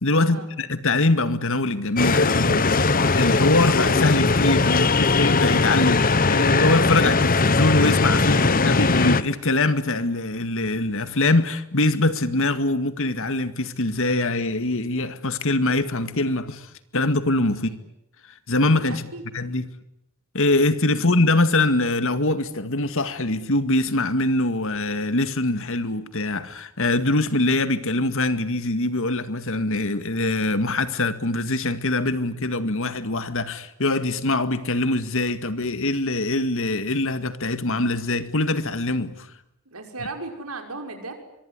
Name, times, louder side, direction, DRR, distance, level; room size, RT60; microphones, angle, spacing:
voice 1, 0.0-16.7 16.9-17.7 18.5-19.7 20.3-39.3, left 2 dB, 65° left, 2.0 m, -23 dB
sound 1, 2.0-9.2, left 3 dB, 40° left, 1.1 m, -19 dB
voice 2, 18.9-19.2 20.9-21.1 39.7-41.1, right 3 dB, 75° right, 6.0 m, -36 dB
24.5 x 24.0 x 9.7 m
head